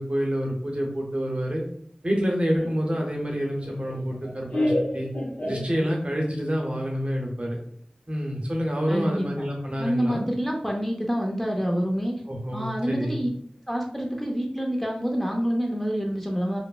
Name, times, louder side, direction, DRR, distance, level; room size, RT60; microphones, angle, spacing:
voice 1, 0.0-1.6 2.0-5.1 5.5-7.6 8.1-10.2 12.3-13.2, equal, 45° right, -1 dB, 0.7 m, -27 dB
Laughter, 2.6-6.2, left 1 dB, 75° left, 0.8 m, -30 dB
voice 2, 8.9-9.5 9.8-12.2 12.5-13.3 13.7-16.6, equal, 5° left, 0 dB, 0.5 m, -27 dB
3.1 x 2.0 x 2.3 m, 0.63 s
wide cardioid pair, 45°, 3 cm